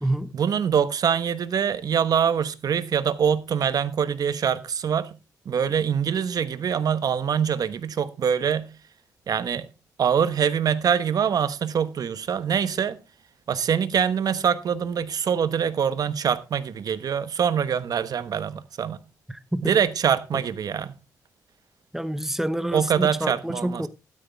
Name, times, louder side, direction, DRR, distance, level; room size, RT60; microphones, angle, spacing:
voice 1, 0.3-5.1 5.4-8.7 9.3-9.7 10.0-13.0 13.5-19.0 19.6-20.9 22.7-23.9, right 7 dB, 60° right, 1.1 m, -24 dB
voice 2, 19.3-19.7 20.3-20.4 21.9-23.9, right 1 dB, 5° right, 1.0 m, -28 dB
12.5 x 9.6 x 3.4 m
cardioid pair, 80°, 7 cm